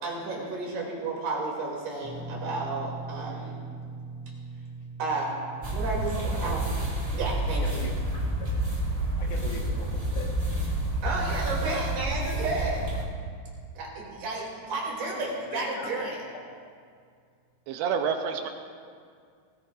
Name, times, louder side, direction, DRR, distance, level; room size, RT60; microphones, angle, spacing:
voice 1, 0.0-3.6 5.0-5.4 5.7-6.6 7.1-7.6 11.0-12.8 13.8-16.2, right 3 dB, 70° right, -3 dB, 4.7 m, -32 dB
sound 1, 2.0-14.3 14.5-14.8 16.4-16.5, right 3 dB, 85° left, 4.8 m, -44 dB
sound 2, 5.6-13.0, right 1 dB, 15° right, 1.4 m, -29 dB
voice 2, 6.4-6.8 7.6-7.9 8.4-8.5 9.2-10.3 11.5-11.7 15.0-16.4 18.4-18.5, left 4 dB, 65° left, -1 dB, 3.2 m, -41 dB
voice 3, 17.7-18.5, right 6 dB, 85° right, 5 dB, 2.7 m, -28 dB
19.5 x 16.0 x 2.6 m, 2.1 s
omnidirectional pair, 4.8 m